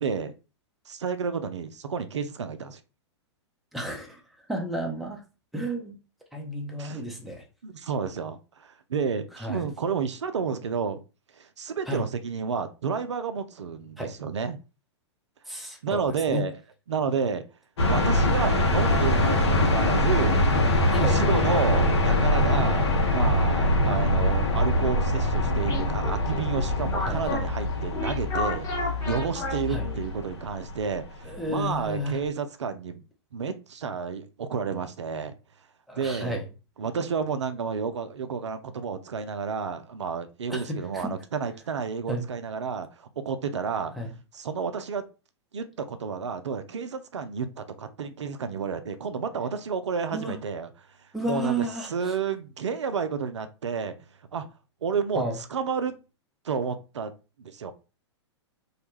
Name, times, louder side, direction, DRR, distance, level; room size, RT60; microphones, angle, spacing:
voice 1, 0.0-0.3 0.9-2.8 6.8-7.0 7.6-11.0 11.3-14.6 15.8-16.6 16.9-17.4 17.9-20.4 21.0-22.9 23.1-33.0 33.3-35.3 36.0-36.4 36.8-43.9 44.3-45.0 45.5-50.7 51.3-53.9 54.3-54.5 54.8-55.2 55.5-55.9 56.4-57.1 57.4-57.7, right 6 dB, 80° right, 9 dB, 0.4 m, -31 dB
voice 2, 3.7-4.2 4.5-5.2 5.5-6.0 6.3-7.4 9.4-9.7 11.9-12.0 14.0-14.1 15.5-16.5 20.9-21.2 27.1-27.2 29.7-29.9 31.2-32.2 35.9-36.5 40.5-41.1 42.1-42.3 44.0-44.1 50.1-50.4 51.1-52.2 55.1-55.4, equal, ahead, 0 dB, 0.6 m, -32 dB
sound 1, 17.8-31.7, left 1 dB, 70° left, 0.7 m, -24 dB
sound 2, 25.1-30.2, left 4 dB, 25° left, 1.1 m, -31 dB
2.3 x 2.1 x 3.1 m, 0.31 s
figure-of-eight pair, 105°, 15 cm